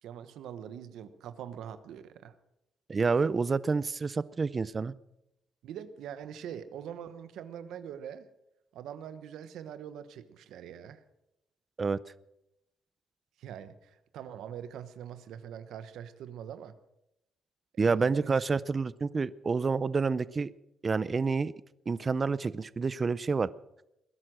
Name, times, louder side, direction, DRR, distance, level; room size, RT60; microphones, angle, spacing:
voice 1, 0.0-2.3 5.6-8.3 8.7-11.0 13.4-16.7 17.8-18.3, right 9 dB, 80° right, 12 dB, 1.1 m, -43 dB
voice 2, 2.9-4.9 11.8-12.0 17.8-20.5 20.8-21.5 21.9-23.5, right 4 dB, 35° right, 19 dB, 0.5 m, -28 dB
20.0 x 11.0 x 6.3 m, 0.86 s
cardioid pair, 90°, 0 cm